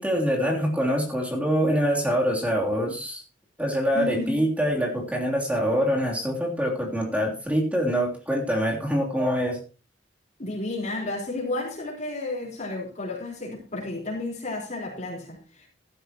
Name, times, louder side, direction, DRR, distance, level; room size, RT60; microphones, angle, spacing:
voice 1, 0.0-3.2 3.6-9.6, equal, 10° right, 3.2 m, -25 dB
voice 2, 3.9-4.4 10.4-15.7, left 2 dB, 40° left, 4.5 m, -32 dB
15.0 x 12.5 x 3.0 m
head